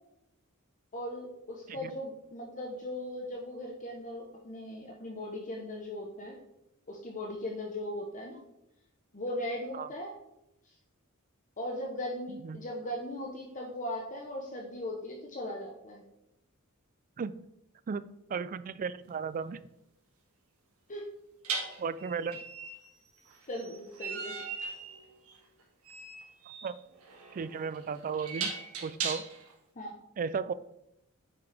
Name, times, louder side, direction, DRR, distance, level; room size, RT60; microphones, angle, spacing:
voice 1, 0.9-6.3 6.9-8.4 9.1-10.1 11.6-16.0 20.9-21.0 23.5-24.5 29.8-29.9, left 1 dB, 35° left, 0 dB, 1.0 m, -38 dB
voice 2, 12.3-12.6 17.2-17.4 17.9-19.6 21.8-22.4 26.6-26.8 27.3-28.5 28.8-29.2 30.2-30.5, right 5 dB, 40° right, 15 dB, 0.3 m, -35 dB
sound 1, 19.0-19.2 21.4-29.5, right 5 dB, 75° right, 1.7 m, -39 dB
8.8 x 5.8 x 3.4 m, 0.85 s
head